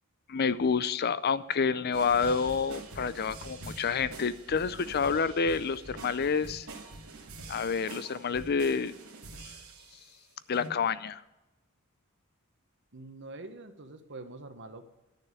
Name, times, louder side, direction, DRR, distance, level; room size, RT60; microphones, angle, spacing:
voice 1, 0.3-6.7 7.5-8.9 9.4-9.5 10.5-11.2, left 5 dB, 50° left, 16 dB, 0.5 m, -28 dB
sound 1, 1.9-10.1 10.5-10.7, right 2 dB, 85° right, 2.2 m, -45 dB
voice 2, 12.9-14.8, right 2 dB, 55° right, 9 dB, 1.3 m, -45 dB
12.0 x 6.7 x 9.0 m, 1.0 s
head